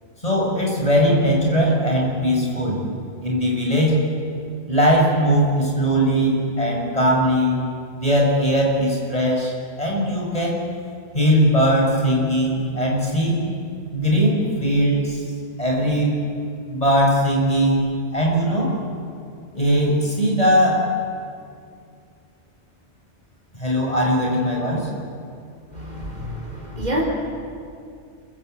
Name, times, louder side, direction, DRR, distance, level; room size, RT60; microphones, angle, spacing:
voice 1, 0.2-2.8 3.2-4.0 4.7-7.6 7.9-10.6 11.1-13.4 13.9-15.2 15.6-16.2 16.7-17.9 18.1-18.7 19.5-20.8 23.6-24.9, equal, 30° left, -2 dB, 7.0 m, -19 dB
voice 2, 25.7-27.0, equal, 35° right, -3 dB, 4.5 m, -28 dB
28.0 x 22.5 x 8.3 m, 2.4 s
omnidirectional pair, 1.2 m